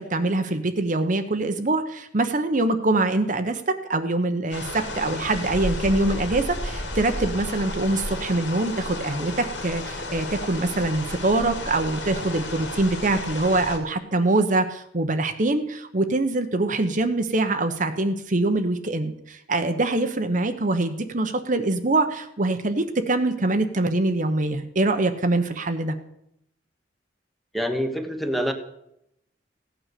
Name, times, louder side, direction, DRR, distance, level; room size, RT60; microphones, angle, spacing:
voice 1, 0.0-26.0, right 2 dB, 45° right, 8 dB, 1.0 m, -24 dB
sound 1, 4.5-13.8, left 1 dB, 85° left, 2.8 m, -32 dB
voice 2, 27.5-28.5, equal, ahead, 6 dB, 1.2 m, -26 dB
16.0 x 9.1 x 6.8 m, 0.79 s
head